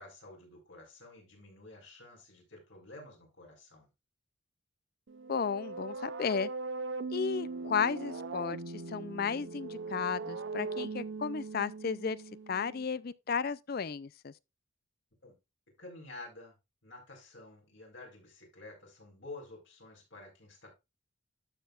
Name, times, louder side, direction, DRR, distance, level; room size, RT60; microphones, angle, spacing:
voice 1, 0.0-3.9 15.2-15.3 15.8-16.6 16.8-20.7, left 2 dB, 65° left, 4.4 m, -50 dB
sound 1, 5.1-12.8, right 3 dB, 65° right, 0.6 m, -40 dB
voice 2, 5.3-6.5 7.1-12.2 12.5-14.3, left 6 dB, 50° left, 0.4 m, -34 dB
12.0 x 6.8 x 2.4 m
head